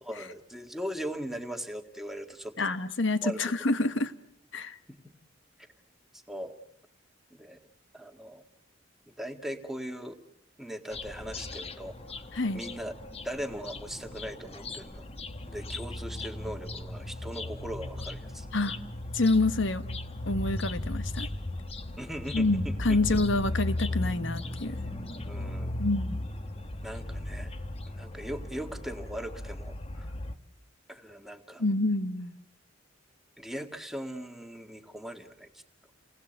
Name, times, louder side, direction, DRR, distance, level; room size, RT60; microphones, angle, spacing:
voice 1, 0.0-2.7 3.2-3.4 4.9-5.0 6.1-6.5 7.3-7.6 7.9-8.4 9.1-10.2 10.6-12.0 12.5-12.9 13.2-15.1 15.5-18.5 22.0-23.2 25.3-25.8 26.8-27.5 28.0-30.1 30.9-31.6 33.4-35.6, equal, ahead, 1.8 m, -39 dB
voice 2, 2.6-4.1 4.5-4.8 12.3-12.6 18.5-18.8 19.1-19.8 20.3-21.3 22.3-24.8 25.8-26.2 31.6-32.3, left 2 dB, 70° left, 1.3 m, -27 dB
sound 1, 10.9-30.4, left 1 dB, 30° left, 1.2 m, -37 dB
29.5 x 19.5 x 8.2 m
head